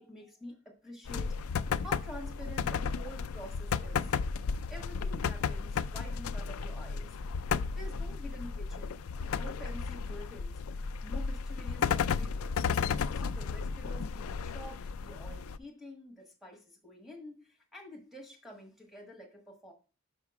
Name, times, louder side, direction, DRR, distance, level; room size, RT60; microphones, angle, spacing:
voice 1, 0.0-4.0 4.7-7.2 7.7-9.0 9.3-10.5 11.0-12.6 13.0-19.7, left 1 dB, ahead, -2 dB, 1.4 m, -48 dB
sound 1, 1.1-15.6, left 6 dB, 70° left, 0.4 m, -34 dB
5.8 x 5.6 x 4.7 m, 0.36 s
head